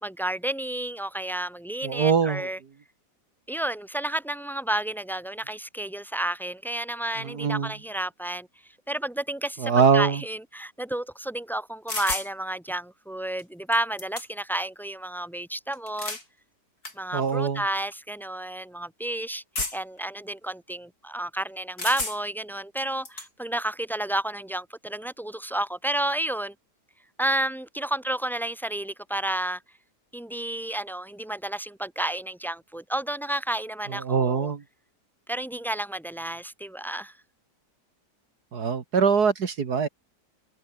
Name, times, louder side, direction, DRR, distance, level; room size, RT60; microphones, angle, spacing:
voice 1, 0.0-2.6 3.5-8.5 8.9-16.2 16.9-19.4 19.7-26.5 27.2-29.6 30.1-34.5 35.3-37.1, right 1 dB, ahead, 3.0 m, -31 dB
voice 2, 1.8-2.5 7.2-7.7 9.6-10.2 17.1-17.6 33.9-34.6 38.5-39.9, right 6 dB, 70° right, 2.3 m, -23 dB
sound 1, 11.9-12.3 13.4-13.5 13.7-14.5 15.7-16.3 16.8-17.0 17.8-17.9 19.6-20.0 21.8-22.4 22.8-23.3, left 2 dB, 60° left, 6.3 m, -32 dB
omnidirectional pair, 1.8 m